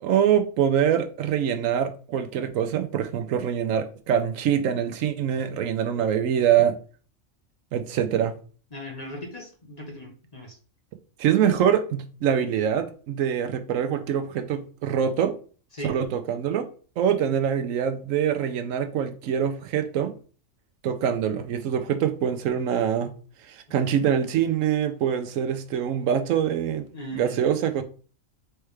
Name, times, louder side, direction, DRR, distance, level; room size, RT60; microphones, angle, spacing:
voice 1, 0.0-6.8 7.7-8.3 11.2-15.4 15.8-16.7 17.0-20.1 20.8-23.2 23.4-26.9 27.1-27.8, right 8 dB, 75° right, 1.0 m, -24 dB
voice 2, 8.7-10.6 15.7-15.9 26.9-27.5, equal, 35° left, 0.9 m, -38 dB
4.5 x 3.3 x 3.2 m
omnidirectional pair, 1.4 m